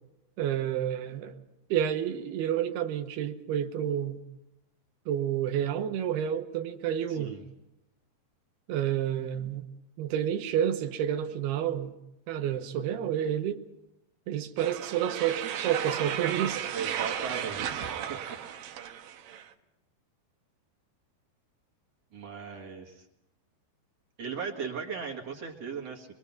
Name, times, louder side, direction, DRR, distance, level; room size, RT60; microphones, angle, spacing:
voice 1, 0.4-1.4 1.7-4.2 5.1-7.4 8.7-9.6 10.0-11.9 12.3-13.6 14.3-16.6, right 10 dB, 90° right, 6 dB, 3.0 m, -29 dB
voice 2, 7.1-7.4 16.7-18.4 22.1-23.0 24.2-26.1, right 6 dB, 50° right, 0 dB, 2.3 m, -37 dB
sound 1, 14.6-19.5, right 10 dB, 70° right, 2.6 m, -34 dB
23.5 x 22.5 x 5.9 m, 0.87 s
omnidirectional pair, 4.5 m